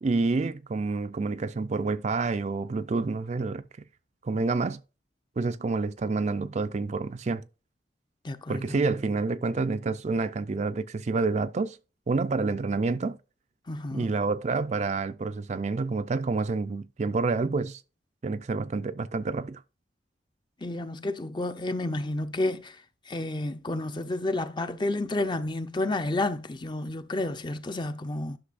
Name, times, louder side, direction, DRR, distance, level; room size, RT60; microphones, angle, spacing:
voice 1, 0.0-3.6 4.2-4.8 5.4-7.4 8.5-11.8 12.1-13.2 13.9-17.8 18.2-19.6, right 3 dB, 40° right, 0.4 m, -28 dB
voice 2, 8.2-8.8 13.7-14.1 20.6-22.8 23.1-28.4, left 2 dB, 25° left, 0.6 m, -30 dB
11.5 x 6.1 x 2.5 m
head